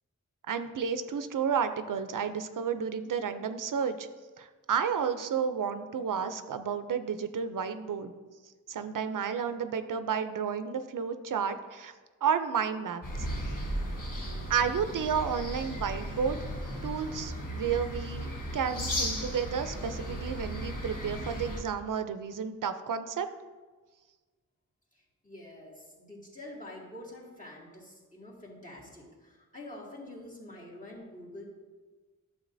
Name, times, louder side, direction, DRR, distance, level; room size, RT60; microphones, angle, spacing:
voice 1, 0.5-4.1 4.4-8.1 8.7-11.9 12.2-13.3 14.5-16.4 16.8-23.3, right 7 dB, 85° right, 9 dB, 0.5 m, -31 dB
sound 1, 13.0-21.6, equal, 80° left, 1.4 m, -36 dB
voice 2, 24.9-31.5, left 1 dB, 25° left, -5 dB, 2.2 m, -47 dB
11.0 x 6.9 x 2.6 m, 1.3 s
wide cardioid pair, 75°, 31 cm